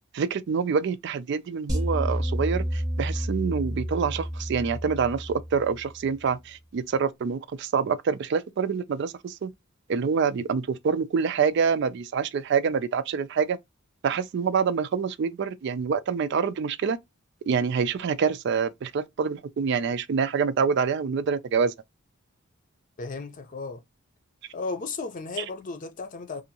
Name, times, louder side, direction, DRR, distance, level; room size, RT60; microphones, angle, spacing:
voice 1, 0.1-9.5 9.9-13.6 14.0-17.0 17.5-21.7 25.4-25.5, right 6 dB, 55° right, 0.3 m, -26 dB
sound 1, 1.7-6.0, equal, 20° right, 0.9 m, -30 dB
voice 2, 23.0-23.8 24.5-26.4, left 4 dB, 40° left, 0.6 m, -34 dB
2.7 x 2.6 x 2.7 m
head